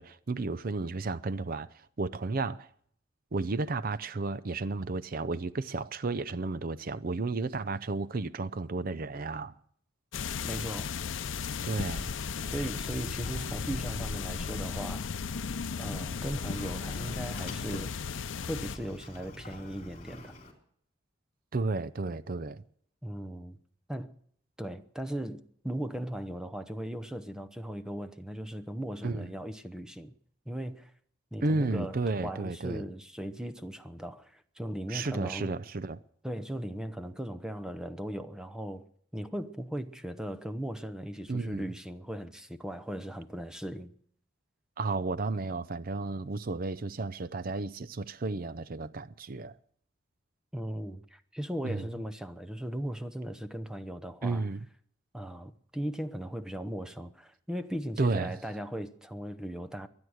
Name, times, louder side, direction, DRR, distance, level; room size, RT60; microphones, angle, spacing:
voice 1, 0.0-2.7 3.3-9.5 11.6-12.1 21.5-22.6 29.0-29.3 31.4-32.8 34.9-36.0 41.3-41.7 44.8-49.5 51.6-51.8 54.2-54.7 58.0-58.3, right 3 dB, 50° right, 0.6 m, -32 dB
sound 1, 10.1-18.8, left 5 dB, 80° left, 0.6 m, -35 dB
voice 2, 10.4-10.9 12.4-15.1 15.8-18.0 18.5-20.3 23.0-23.6 23.9-24.1 24.6-30.1 30.5-30.9 31.3-35.5 36.2-38.9 39.1-43.9 50.5-54.4 55.1-59.9, right 1 dB, 5° right, 0.8 m, -38 dB
Sliding door, 11.1-20.5, left 1 dB, 35° left, 3.8 m, -48 dB
23.0 x 9.6 x 6.4 m
head